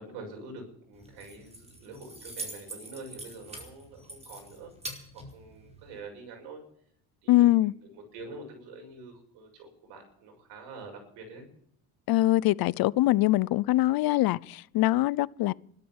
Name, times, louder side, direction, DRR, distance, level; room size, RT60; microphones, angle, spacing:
voice 1, 0.0-4.7 5.1-6.6 7.2-11.4, right 3 dB, 85° right, 6.8 m, -46 dB
Keys jangling, 0.9-6.0, right 2 dB, 15° right, 4.7 m, -44 dB
voice 2, 7.3-7.7 12.1-15.5, left 16 dB, 60° left, 0.6 m, -23 dB
13.5 x 12.5 x 7.3 m
cardioid pair, 115°, 40 cm